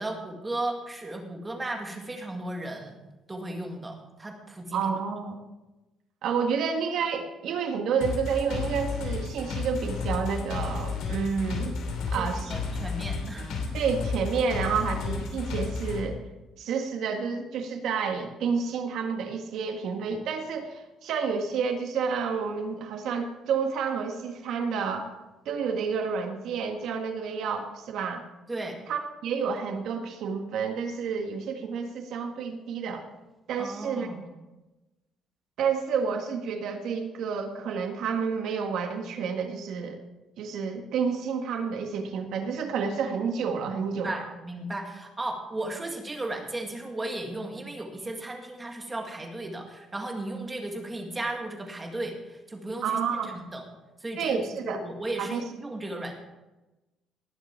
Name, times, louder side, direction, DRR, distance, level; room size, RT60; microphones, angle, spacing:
voice 1, 0.0-3.0 3.3-4.9 12.2-13.5 28.5-28.7 33.6-34.2 43.7-53.6 54.0-56.1, right 2 dB, 15° right, 2 dB, 1.8 m, -35 dB
voice 2, 4.7-5.4 6.2-11.8 12.1-12.5 13.7-16.2 16.6-25.1 25.5-28.2 28.9-33.0 33.5-34.1 35.6-40.0 40.4-44.2 52.8-53.4 54.2-54.8 55.2-55.5, right 6 dB, 70° right, 4 dB, 1.7 m, -29 dB
sound 1, 8.0-16.0, left 4 dB, 80° left, 2.9 m, -32 dB
19.0 x 7.0 x 4.5 m, 1.1 s
cardioid pair, 150°, 0 cm